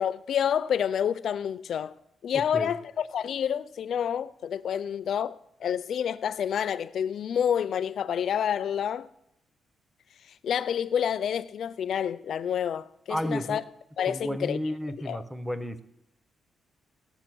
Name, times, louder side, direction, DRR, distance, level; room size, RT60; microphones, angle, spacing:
voice 1, 0.0-1.9 2.2-5.4 5.6-9.1 10.4-13.6 14.0-14.6 15.1-15.2, left 8 dB, 50° left, 0.4 m, -28 dB
voice 2, 2.3-2.7 13.1-13.6 14.1-15.8, equal, 5° right, 0.5 m, -32 dB
16.5 x 7.0 x 6.1 m
cardioid pair, 175°, 0 cm